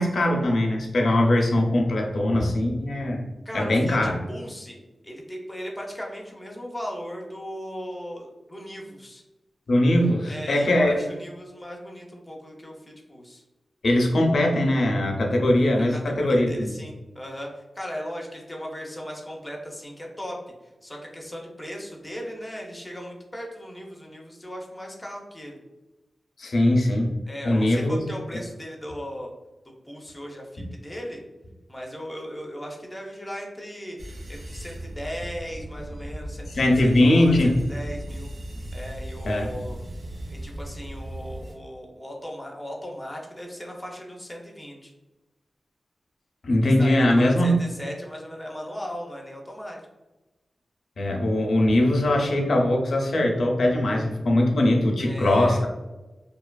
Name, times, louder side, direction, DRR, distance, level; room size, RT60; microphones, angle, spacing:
voice 1, 0.0-3.2 3.5-4.2 9.7-10.9 13.8-16.7 26.4-27.1 27.4-28.0 36.5-37.5 39.2-39.5 46.4-47.5 51.0-55.7, left 1 dB, 65° left, 1 dB, 0.5 m, -21 dB
voice 2, 3.4-4.8 5.0-9.2 10.2-13.4 15.7-20.4 20.8-25.6 27.3-29.3 29.9-31.2 31.7-34.0 34.3-36.5 36.8-38.3 38.7-39.8 40.3-44.9 46.6-49.8 55.0-55.6, equal, 10° left, -1 dB, 0.5 m, -37 dB
sound 1, 34.0-41.5, right 1 dB, 70° right, 0.7 m, -37 dB
2.7 x 2.3 x 2.2 m, 1.1 s
wide cardioid pair, 145°, 0 cm